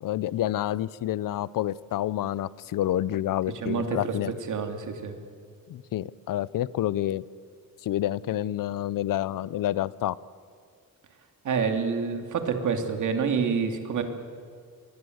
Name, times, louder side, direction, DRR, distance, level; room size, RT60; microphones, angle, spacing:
voice 1, 0.0-4.3 5.7-7.2 7.8-10.2, left 13 dB, 70° left, 20 dB, 0.7 m, -28 dB
voice 2, 3.6-4.1 4.5-5.2 11.4-14.0, right 6 dB, 60° right, 5 dB, 2.7 m, -27 dB
26.0 x 22.0 x 8.0 m, 2.1 s
wide cardioid pair, 165°, 34 cm